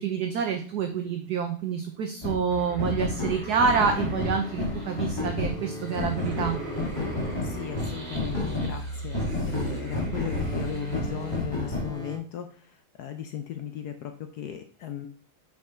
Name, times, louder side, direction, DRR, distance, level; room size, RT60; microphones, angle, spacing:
voice 1, 0.0-6.6, right 6 dB, 65° right, 4 dB, 1.0 m, -27 dB
sound 1, 2.2-2.4 2.8-8.7 9.1-12.2, left 2 dB, 15° left, 1.7 m, -31 dB
sound 2, 2.5-11.4, right 1 dB, 45° right, 2.3 m, -38 dB
voice 2, 7.4-15.1, left 10 dB, 80° left, 7 dB, 0.9 m, -37 dB
5.9 x 4.8 x 4.3 m, 0.43 s
omnidirectional pair, 2.3 m